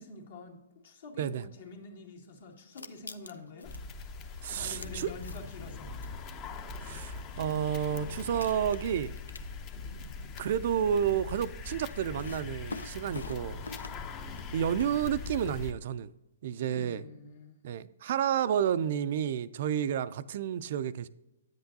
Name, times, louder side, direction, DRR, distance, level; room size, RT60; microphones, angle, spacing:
voice 1, 0.0-3.7 4.3-5.9 16.7-17.6, left 3 dB, 65° left, 2.0 m, -47 dB
sound 1, 2.6-3.8 4.5-5.6 6.0-6.1 7.3-7.4 7.8-7.9 8.2-9.9 10.2-10.5 12.2-14.1 14.3-14.9, left 3 dB, 90° left, 0.5 m, -44 dB
sound 2, 3.6-15.7, left 4 dB, 30° left, 0.6 m, -41 dB
voice 2, 4.4-5.1 6.8-9.1 10.4-13.6 14.5-16.1 16.4-17.0 17.6-21.1, right 9 dB, 55° right, 0.3 m, -30 dB
9.4 x 7.9 x 2.7 m
hypercardioid pair, 130°, 0 cm